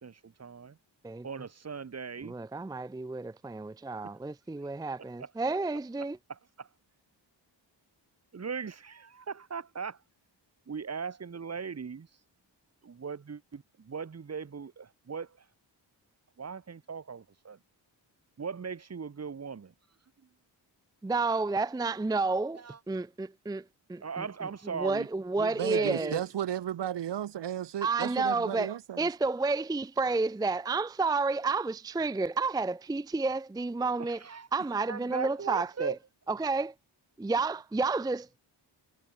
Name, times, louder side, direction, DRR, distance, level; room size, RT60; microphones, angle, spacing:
voice 1, 0.0-0.8 1.2-2.3 5.2-5.3 6.3-6.7 8.3-10.0 10.7-12.1 12.8-15.4 16.4-17.6 18.4-19.7 22.5-22.8 24.0-25.1 25.4-26.3 34.0-34.5 34.9-36.0, right 6 dB, 35° right, 1.5 m, -39 dB
voice 2, 2.2-6.2 21.0-24.2 24.7-26.2 27.8-34.2 34.5-36.0 36.3-36.7 37.2-38.4, right 3 dB, 10° right, 0.5 m, -31 dB
voice 3, 25.6-29.1, right 10 dB, 75° right, 1.0 m, -34 dB
wide cardioid pair, 125°, 43 cm